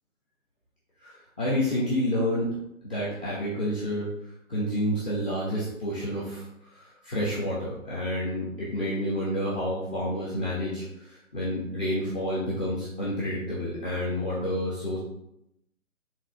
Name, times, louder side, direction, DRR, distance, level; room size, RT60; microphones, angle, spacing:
voice 1, 1.0-2.6 2.8-4.1 4.5-15.0, equal, 5° right, -7 dB, 0.6 m, -29 dB
5.1 x 4.0 x 5.1 m, 0.79 s
hypercardioid pair, 160°, 42 cm